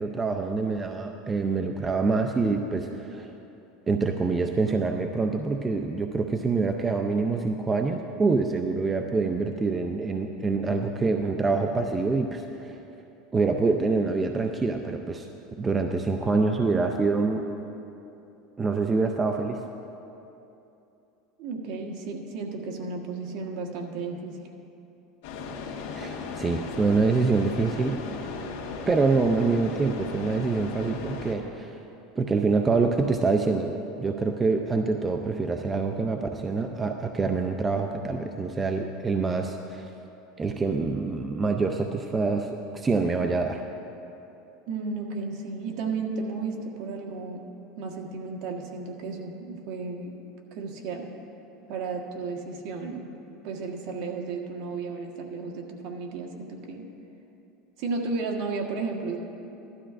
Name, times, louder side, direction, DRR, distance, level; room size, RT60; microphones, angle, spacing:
voice 1, 0.0-3.3 3.9-12.8 13.3-15.3 15.6-17.4 18.6-19.6 25.9-27.9 28.9-31.8 32.2-33.7 34.0-39.9 40.4-43.6, right 4 dB, 20° right, 4 dB, 0.4 m, -26 dB
voice 2, 21.4-24.4 44.7-47.4 47.8-50.1 50.5-51.1 51.7-53.0 53.4-56.9 57.8-59.2, right 4 dB, 60° right, 1 dB, 1.4 m, -33 dB
sound 1, 25.2-31.4, left 4 dB, 75° left, 1.5 m, -36 dB
16.0 x 12.5 x 2.5 m, 2.9 s
supercardioid pair, 135°, 0 cm